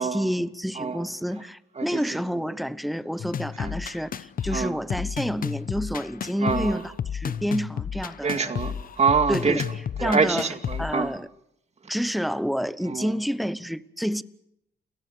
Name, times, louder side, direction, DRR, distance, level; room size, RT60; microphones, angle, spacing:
voice 1, 0.0-8.6 9.3-9.6 10.0-10.5 10.8-11.3 11.9-14.2, equal, ahead, 0.9 m, -29 dB
voice 2, 0.8-1.1 1.8-2.0 3.6-3.7 4.5-4.7 6.4-6.8 8.2-9.6 10.0-11.1 12.9-13.1, right 5 dB, 35° right, 2.4 m, -25 dB
sound 1, 3.2-11.2, left 8 dB, 45° left, 0.9 m, -32 dB
29.0 x 18.0 x 6.8 m
supercardioid pair, 80°, 20 cm